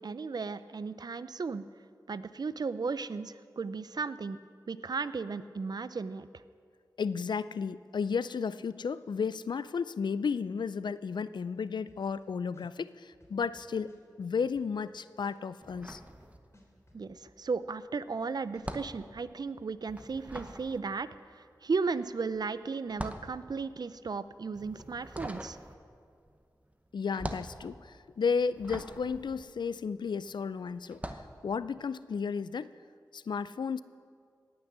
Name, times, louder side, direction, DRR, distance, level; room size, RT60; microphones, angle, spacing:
voice 1, 0.0-1.7 2.1-4.4 4.7-6.3 16.9-21.1 21.3-25.6, right 4 dB, 65° right, 14 dB, 0.5 m, -35 dB
voice 2, 7.0-16.0 26.9-31.0 31.4-32.7 33.1-33.8, left 5 dB, 80° left, 16 dB, 0.4 m, -33 dB
sound 1, 11.9-12.2 12.5-14.9 15.2-17.0, left 1 dB, 35° left, 3.3 m, -60 dB
sound 2, 15.6-16.8 17.1-30.3 30.8-31.4, right 1 dB, 20° right, 0.9 m, -44 dB
18.5 x 6.2 x 7.4 m, 2.2 s
wide cardioid pair, 55°, 8 cm